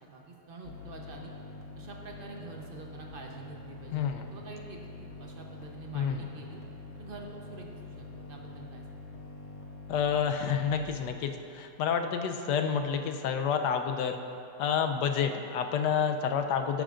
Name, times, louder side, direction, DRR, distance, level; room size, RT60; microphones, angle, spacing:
voice 1, 0.1-1.3 1.8-4.1 4.3-6.6 6.9-9.1, right 3 dB, 40° right, 0 dB, 0.9 m, -46 dB
sound 1, 0.6-10.9, left 2 dB, 50° left, 1.1 m, -45 dB
voice 2, 3.9-4.3 5.9-6.2 9.9-14.2 14.6-16.8, left 7 dB, 85° left, 6 dB, 1.2 m, -29 dB
12.5 x 10.0 x 2.5 m, 2.6 s
omnidirectional pair, 1.8 m